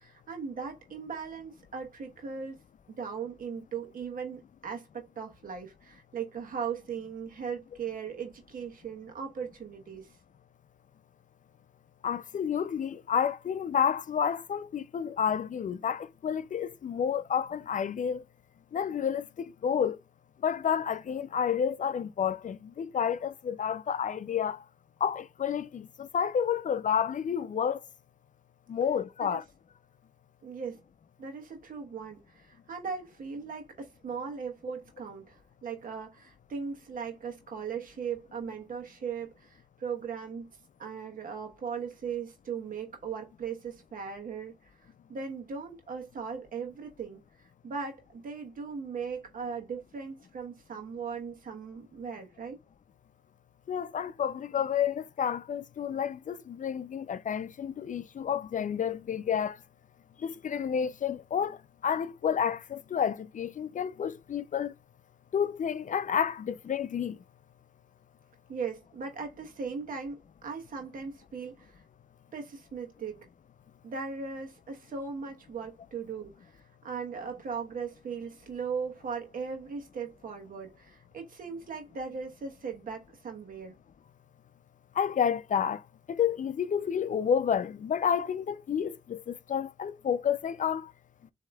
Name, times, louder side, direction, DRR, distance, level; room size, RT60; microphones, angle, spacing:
voice 1, 0.0-2.6 2.9-10.2 29.2-29.4 30.4-30.8 31.2-40.5 40.8-44.5 45.1-52.6 68.5-71.8 72.3-73.2 73.8-83.8, right 6 dB, 90° right, 1.1 m, -38 dB
voice 2, 12.0-18.2 18.7-20.0 20.4-24.6 25.0-27.8 28.7-29.4 53.7-59.6 60.2-61.6 61.8-64.7 65.3-67.2 85.0-85.8 86.1-90.9, left 8 dB, 65° left, 0.4 m, -30 dB
7.3 x 2.8 x 2.3 m
cardioid pair, 40°, 14 cm